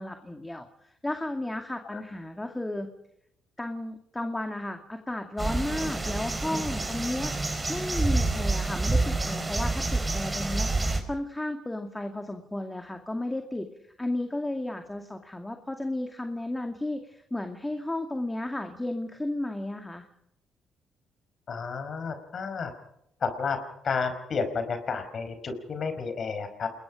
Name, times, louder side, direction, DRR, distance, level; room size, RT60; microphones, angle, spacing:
voice 1, 0.0-2.9 3.6-7.3 7.7-13.7 14.0-20.1, left 1 dB, 10° left, 5 dB, 2.3 m, -33 dB
sound 1, 5.4-11.0, right 2 dB, 20° right, 5.1 m, -28 dB
voice 2, 21.5-22.7 23.2-23.6 23.8-26.7, left 5 dB, 50° left, 8 dB, 5.0 m, -31 dB
28.5 x 21.5 x 5.2 m, 0.78 s
cardioid pair, 90°, 0 cm